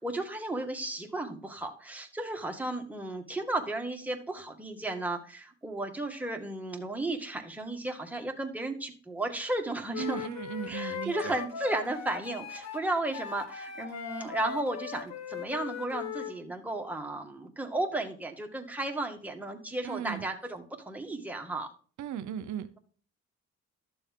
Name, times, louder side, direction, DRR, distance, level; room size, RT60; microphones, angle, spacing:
voice 1, 0.0-10.2 10.7-21.7, right 2 dB, 5° right, 2.0 m, -34 dB
Wind instrument woodwind instrument, 9.9-16.4, left 8 dB, 65° left, 1.7 m, -39 dB
voice 2, 10.0-11.4 19.8-20.3 22.0-22.8, right 9 dB, 75° right, 0.8 m, -37 dB
12.0 x 7.1 x 3.7 m
cardioid pair, 90°, 30 cm